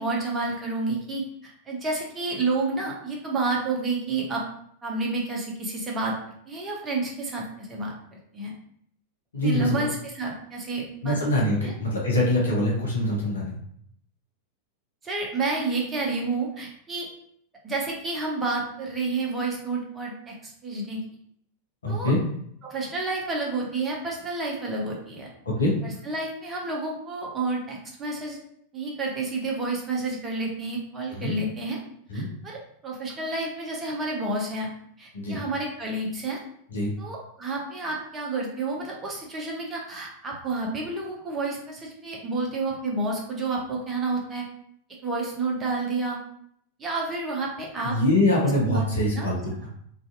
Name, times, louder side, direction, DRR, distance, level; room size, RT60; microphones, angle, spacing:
voice 1, 0.0-4.4 4.8-6.1 6.5-8.5 9.4-11.2 11.6-11.7 15.0-17.1 17.6-21.0 21.9-22.1 22.6-25.3 25.8-28.4 28.7-31.8 32.1-34.7 35.0-36.4 37.0-44.4 45.0-46.2 46.8-48.0 48.6-48.8 49.1-49.3, right 3 dB, 20° right, -2 dB, 0.7 m, -30 dB
voice 2, 9.3-9.9 11.0-13.5 21.8-22.2 25.4-25.7 31.1-31.3 32.1-32.3 35.1-35.4 36.7-36.9 47.8-49.4, left 1 dB, 70° left, -3 dB, 0.8 m, -24 dB
2.5 x 2.4 x 2.5 m, 0.68 s
figure-of-eight pair, 90°, 0 cm